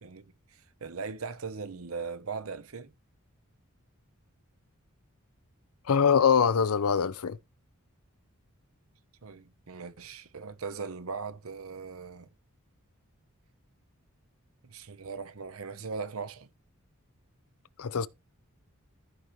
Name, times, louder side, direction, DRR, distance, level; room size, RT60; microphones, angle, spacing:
voice 1, 0.0-2.9 9.2-12.3 14.6-16.5, right 5 dB, 75° right, 0.8 m, -39 dB
voice 2, 5.9-7.4 17.8-18.1, left 6 dB, 85° left, 0.6 m, -23 dB
14.5 x 5.2 x 3.0 m
head